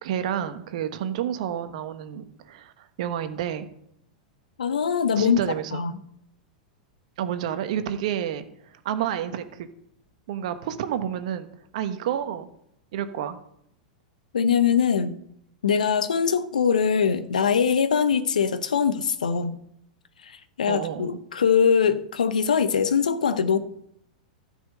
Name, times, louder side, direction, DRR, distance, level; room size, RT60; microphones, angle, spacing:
voice 1, 0.0-3.7 5.1-5.8 7.2-9.7 10.3-11.5 11.7-12.5 12.9-13.4 20.7-21.1, right 10 dB, 60° right, 10 dB, 1.2 m, -30 dB
voice 2, 4.6-5.4 5.7-5.9 14.3-15.2 15.6-19.6 20.2-23.6, left 7 dB, 80° left, 12 dB, 0.9 m, -22 dB
13.0 x 5.6 x 7.7 m, 0.75 s
hypercardioid pair, 105°, 4 cm